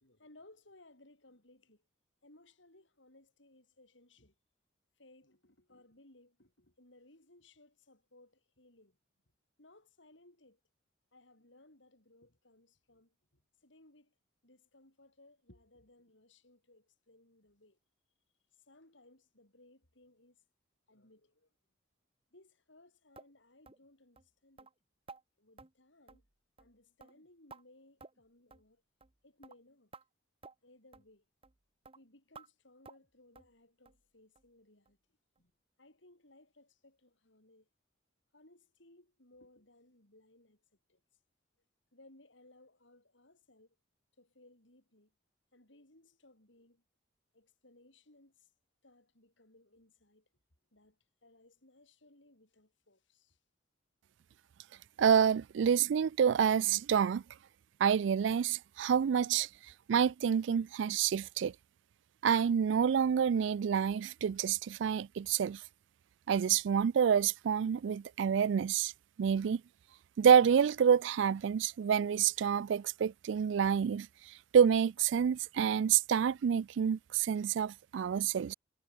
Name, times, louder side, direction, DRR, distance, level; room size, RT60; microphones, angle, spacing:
voice 1, 0.0-1.9 2.2-4.3 5.0-9.0 9.6-10.6 11.1-14.1 14.4-17.8 18.5-20.4 20.9-21.5 22.3-24.7 25.4-26.3 26.6-28.8 29.2-29.9 30.6-31.2 31.9-35.0 35.4-35.5 35.8-37.7 38.3-40.6 40.9-41.0 41.9-43.8 44.2-45.1 45.5-46.8 47.3-48.5 48.8-50.3 50.7-53.4, left 2 dB, 70° left, 5.1 m, -63 dB
sound 1, 23.2-23.3 23.7-23.8 24.2-24.3 24.6-24.7 25.1-25.2 25.6-25.7 26.1-26.3 26.6-26.7 27.0-27.6 28.0-28.2 28.5-28.7 29.0-29.2 29.4-29.6 29.9-30.0 30.4-30.5 30.9-31.1 31.4-31.6 31.8-32.0 32.3-32.5 32.8-33.1 33.4-33.5 33.9-34.0 34.4-34.5 34.9-35.0 35.4-35.5, right 4 dB, 30° right, 1.0 m, -54 dB
voice 2, 55.0-57.2 57.8-59.5 59.9-61.5 62.2-65.6 66.3-68.9 69.2-69.6 70.2-74.1 74.5-78.5, right 7 dB, 65° right, 0.3 m, -28 dB
head